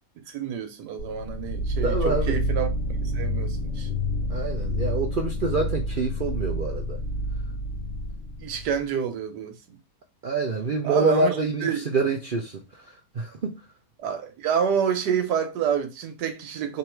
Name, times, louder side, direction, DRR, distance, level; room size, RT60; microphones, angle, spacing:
voice 1, 0.3-2.7 3.0-3.9 8.4-9.8 10.8-11.3 11.6-11.8 14.0-16.8, right 8 dB, 85° right, 1.4 m, -28 dB
sound 1, 1.0-8.8, equal, 60° left, 1.1 m, -28 dB
voice 2, 1.8-2.4 4.3-7.0 10.2-12.8 13.1-13.6, right 3 dB, 70° right, 0.4 m, -26 dB
3.6 x 3.1 x 4.4 m
omnidirectional pair, 1.7 m